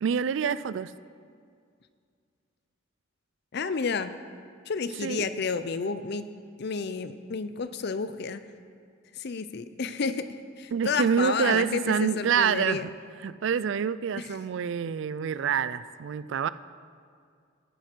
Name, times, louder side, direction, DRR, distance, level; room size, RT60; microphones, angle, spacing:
voice 1, 0.0-0.9 5.0-5.2 10.7-12.9 13.2-16.5, right 7 dB, 65° right, 16 dB, 0.3 m, -27 dB
voice 2, 3.5-4.1 4.7-6.3 6.6-8.4 9.2-10.2 10.6-12.9 14.2-14.3, left 5 dB, 55° left, 12 dB, 0.5 m, -30 dB
13.5 x 9.1 x 4.5 m, 2.2 s
head